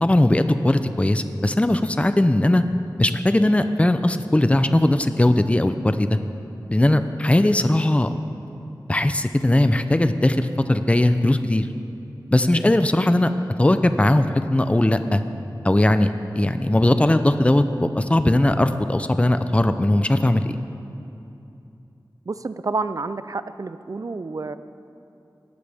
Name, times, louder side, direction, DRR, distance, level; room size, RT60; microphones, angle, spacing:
voice 1, 0.0-2.6 3.0-6.2 6.7-8.1 8.9-11.7 12.3-13.3 13.6-15.2 15.6-20.4, left 1 dB, 15° left, 9 dB, 0.5 m, -19 dB
voice 2, 22.3-24.6, right 3 dB, 50° right, 13 dB, 0.5 m, -29 dB
18.5 x 11.5 x 3.5 m, 2.8 s
wide cardioid pair, 65°, 8 cm